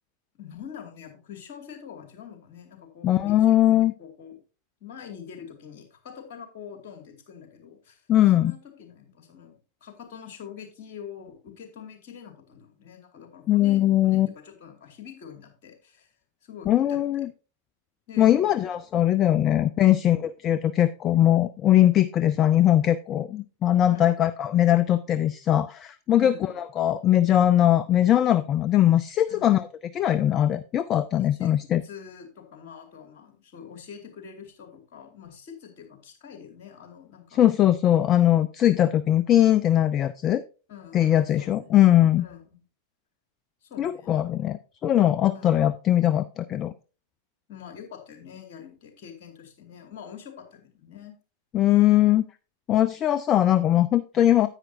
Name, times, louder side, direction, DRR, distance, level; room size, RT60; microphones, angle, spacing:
voice 1, 0.3-3.6 4.0-4.4 4.8-8.1 8.3-16.1 16.4-17.3 18.1-18.6 19.8-20.1 23.9-24.1 26.2-26.5 29.3-29.5 31.4-31.5 31.8-37.4 40.7-41.8 42.2-42.6 43.6-44.2 45.3-45.5 47.5-51.2, left 8 dB, 50° left, 5 dB, 2.4 m, -45 dB
voice 2, 3.0-3.9 8.1-8.5 13.5-14.3 16.7-17.3 18.2-20.2 20.4-29.6 29.9-31.8 37.4-40.4 40.9-42.2 43.8-44.6 44.8-46.7 51.5-52.3 52.7-54.5, left 12 dB, 30° left, 15 dB, 0.4 m, -20 dB
9.9 x 8.9 x 2.8 m, 0.34 s
figure-of-eight pair, 90°, 0 cm